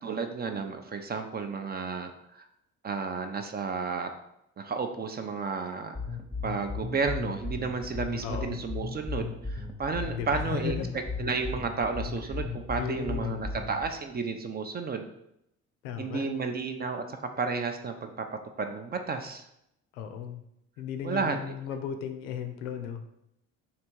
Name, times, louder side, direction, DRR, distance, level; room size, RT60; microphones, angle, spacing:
voice 1, 0.0-2.5 2.8-4.1 4.6-6.0 6.4-10.8 11.2-15.1 16.0-18.3 18.6-19.5 21.0-21.4, right 4 dB, 25° right, 6 dB, 0.5 m, -32 dB
sound 1, 5.9-13.9, left 4 dB, 5° left, 0.8 m, -35 dB
voice 2, 8.2-8.5 10.2-10.9 12.8-13.5 15.8-16.3 19.9-20.4 20.8-23.0, left 8 dB, 70° left, 7 dB, 0.6 m, -36 dB
3.3 x 2.8 x 4.4 m, 0.80 s
figure-of-eight pair, 50°, 38 cm